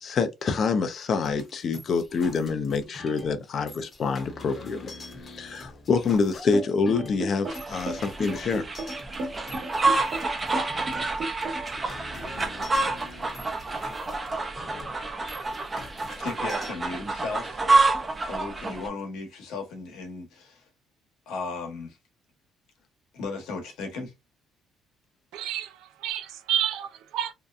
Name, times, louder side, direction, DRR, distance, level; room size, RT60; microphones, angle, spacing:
voice 1, 0.0-4.9 5.3-8.6, left 4 dB, 45° left, 0.4 m, -26 dB
sound 1, 1.2-16.7, left 2 dB, 30° left, 0.8 m, -45 dB
sound 2, 6.5-11.8, right 2 dB, 50° right, 1.1 m, -34 dB
sound 3, 7.5-18.9, right 3 dB, 20° right, 0.4 m, -28 dB
voice 2, 16.1-17.6 18.2-20.7 21.3-22.0 23.1-24.1, left 3 dB, 80° left, 1.0 m, -36 dB
voice 3, 25.3-27.3, right 10 dB, 85° right, 0.5 m, -30 dB
2.7 x 2.2 x 2.4 m
cardioid pair, 125°, 0 cm